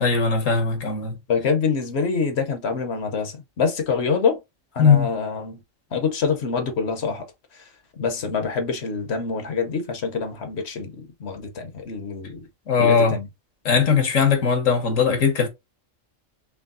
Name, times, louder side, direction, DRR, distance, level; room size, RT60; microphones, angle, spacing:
voice 1, 0.0-1.2 4.8-5.1 12.7-13.2 13.6-15.5, left 5 dB, 85° left, 1.6 m, -19 dB
voice 2, 1.3-4.4 4.7-5.6 5.9-7.3 7.5-7.6 8.0-12.4 12.8-13.3, left 5 dB, 60° left, 1.0 m, -25 dB
4.5 x 3.2 x 2.5 m
omnidirectional pair, 1.3 m